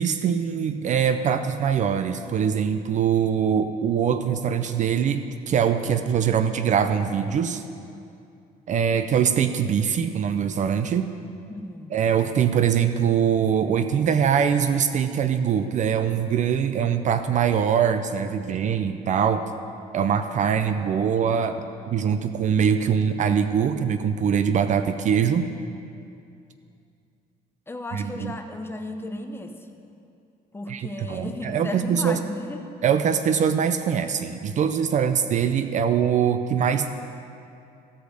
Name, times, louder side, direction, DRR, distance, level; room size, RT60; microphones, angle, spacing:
voice 1, 0.0-7.6 8.7-11.1 11.9-19.5 19.9-25.5 27.9-28.4 30.7-32.2 32.8-36.9, right 7 dB, 45° right, 10 dB, 0.5 m, -23 dB
voice 2, 11.5-11.9 27.7-29.7 30.5-32.7, left 2 dB, 15° left, 5 dB, 0.8 m, -35 dB
15.0 x 5.0 x 6.3 m, 2.5 s
cardioid pair, 110°, 17 cm